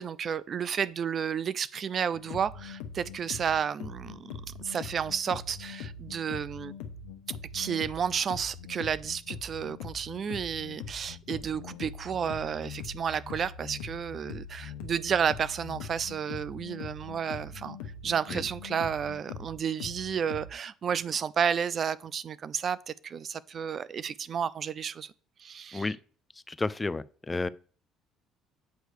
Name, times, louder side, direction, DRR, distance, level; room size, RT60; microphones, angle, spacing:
voice 1, 0.0-4.3 4.6-6.7 7.3-17.8 18.0-25.1 25.4-25.9, right 7 dB, 45° right, 0.4 m, -31 dB
sound 1, 2.1-20.5, left 6 dB, 85° left, 1.0 m, -42 dB
voice 2, 26.5-27.5, left 3 dB, 20° left, 0.4 m, -31 dB
8.1 x 3.2 x 6.4 m
supercardioid pair, 80°, 0 cm